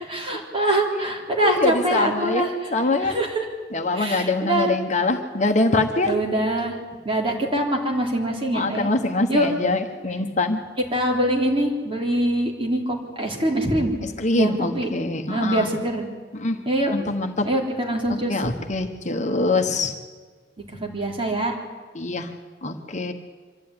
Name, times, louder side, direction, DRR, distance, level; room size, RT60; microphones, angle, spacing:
voice 1, 0.1-2.5 3.0-3.3 3.9-4.7 6.1-6.8 7.0-8.9 9.3-9.5 10.9-13.9 14.3-14.9 15.3-16.1 16.7-16.9 17.4-18.3 20.7-21.6, right 1 dB, 30° right, 0 dB, 3.7 m, -24 dB
voice 2, 0.7-1.1 1.4-3.2 3.7-6.2 8.5-10.6 14.0-15.7 16.3-16.6 16.9-17.5 18.1-19.9 21.9-22.3 22.6-23.1, left 2 dB, 40° left, 6 dB, 1.2 m, -24 dB
25.0 x 13.0 x 9.7 m, 1.5 s
head